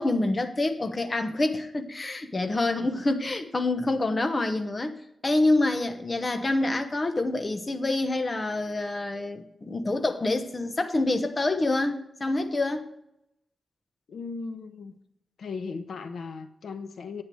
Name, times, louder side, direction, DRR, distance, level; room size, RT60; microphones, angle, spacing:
voice 1, 0.0-12.9, left 2 dB, 25° left, 1.0 m, -27 dB
voice 2, 14.1-15.0 15.4-17.2, left 4 dB, 80° left, 1.1 m, -37 dB
10.0 x 9.6 x 4.7 m
wide cardioid pair, 150°, 0 cm